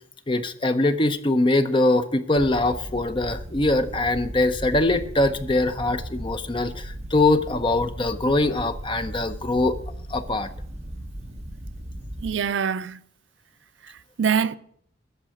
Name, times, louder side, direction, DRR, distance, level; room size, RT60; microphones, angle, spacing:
voice 1, 0.3-9.8 10.1-10.5, left 2 dB, 25° left, 0.7 m, -22 dB
sound 1, 2.4-12.3, right 1 dB, 35° right, 1.3 m, -37 dB
voice 2, 12.2-13.0 13.8-14.6, right 7 dB, 70° right, 0.5 m, -25 dB
13.5 x 4.8 x 8.9 m
head